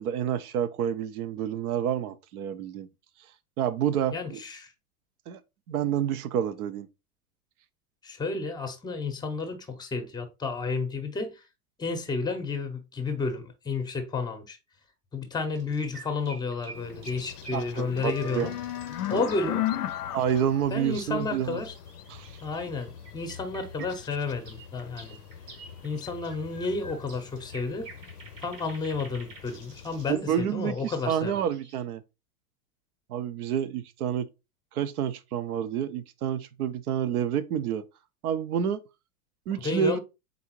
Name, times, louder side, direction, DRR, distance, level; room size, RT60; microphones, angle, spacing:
voice 1, 0.0-2.9 3.6-4.4 5.3-5.4 5.7-6.9 17.5-18.5 19.1-19.2 20.1-21.6 22.1-22.4 30.1-32.0 33.1-34.3 34.7-37.8 38.2-38.8 39.5-40.0, right 9 dB, 70° right, 0.7 m, -29 dB
voice 2, 4.1-4.7 8.0-11.4 11.8-14.6 15.1-18.5 19.1-19.6 20.7-21.7 22.4-25.2 25.8-27.9 28.4-31.4 39.6-40.0, left 4 dB, 10° left, 0.7 m, -31 dB
sound 1, 15.4-31.8, right 4 dB, 85° right, 1.5 m, -50 dB
sound 2, 16.7-30.1, left 12 dB, 85° left, 0.5 m, -39 dB
4.0 x 3.5 x 2.9 m
hypercardioid pair, 105°, 46 cm